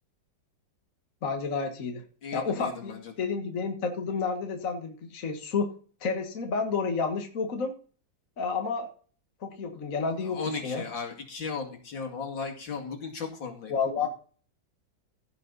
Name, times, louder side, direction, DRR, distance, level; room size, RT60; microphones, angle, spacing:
voice 1, 1.2-2.0 2.3-5.7 6.0-7.7 8.4-8.9 9.4-10.8 13.7-14.1, left 5 dB, 45° left, 3 dB, 1.8 m, -30 dB
voice 2, 2.2-3.1 10.2-13.7, left 5 dB, 70° left, 1 dB, 3.2 m, -36 dB
16.0 x 6.8 x 4.1 m, 0.41 s
omnidirectional pair, 2.1 m